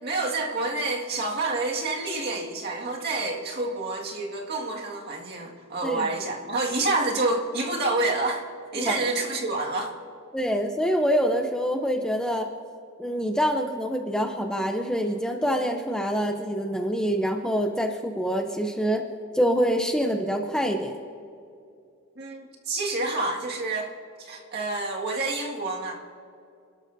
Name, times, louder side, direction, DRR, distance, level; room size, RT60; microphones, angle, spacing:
voice 1, 0.0-8.4 8.7-9.9 22.2-23.9 24.2-25.9, right 2 dB, 50° right, -1 dB, 2.0 m, -28 dB
voice 2, 10.3-12.5 13.0-19.1 19.3-21.0, equal, 5° left, 4 dB, 0.7 m, -25 dB
28.0 x 13.0 x 2.7 m, 2.5 s
head